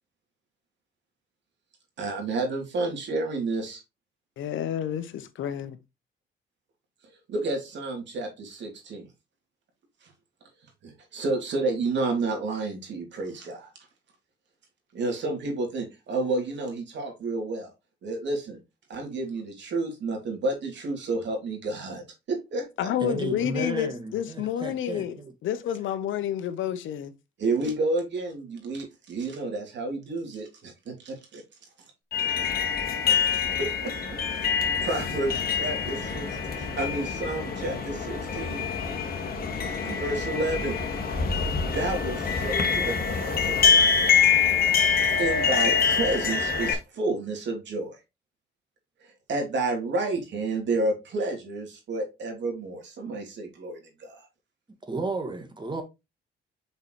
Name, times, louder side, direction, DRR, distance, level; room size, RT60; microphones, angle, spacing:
voice 1, 2.0-3.8 7.3-9.1 10.0-10.1 10.8-13.7 14.9-17.7 18.0-18.6 18.9-22.9 27.4-31.4 33.1-33.9 34.3-34.5 34.8-38.7 39.8-40.8 41.7-44.0 45.2-48.0 49.0-54.3, right 2 dB, 65° right, 3.0 m, -30 dB
voice 2, 4.4-5.1 5.4-5.8 22.8-25.2 25.4-27.1, left 10 dB, 75° left, 1.0 m, -29 dB
voice 3, 23.0-25.3 54.9-55.8, right 3 dB, 25° right, 1.8 m, -33 dB
sound 1, 32.1-46.7, left 6 dB, 50° left, 1.9 m, -25 dB
6.0 x 5.5 x 3.1 m
cardioid pair, 90°, 20 cm